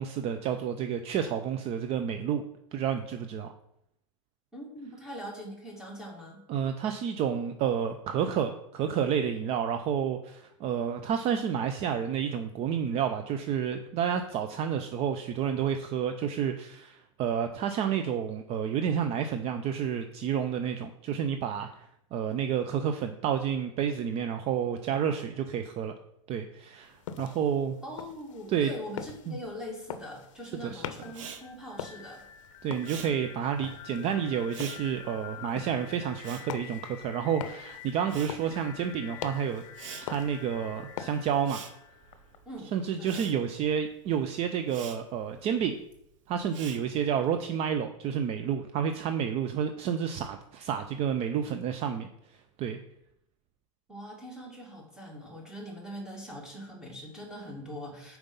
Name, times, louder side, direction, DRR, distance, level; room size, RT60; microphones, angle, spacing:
voice 1, 0.0-2.4 2.7-3.5 6.5-25.9 26.3-27.8 28.5-28.7 29.3-29.4 30.6-30.8 32.6-39.6 39.9-41.6 42.7-45.8 46.3-52.1 52.6-52.8, right 8 dB, 40° right, 7 dB, 0.5 m, -30 dB
voice 2, 4.5-6.5 27.8-32.2 42.5-42.7 43.0-43.2 53.9-58.2, equal, 5° right, -1 dB, 2.1 m, -42 dB
sound 1, 26.8-41.7, left 9 dB, 70° left, 0.6 m, -44 dB
sound 2, 31.0-42.8, left 10 dB, 40° left, 1.0 m, -48 dB
Respiratory sounds, 31.1-37.5 37.8-47.3, right 7 dB, 70° right, 1.0 m, -47 dB
5.2 x 4.6 x 5.4 m, 0.77 s
hypercardioid pair, 110°, 17 cm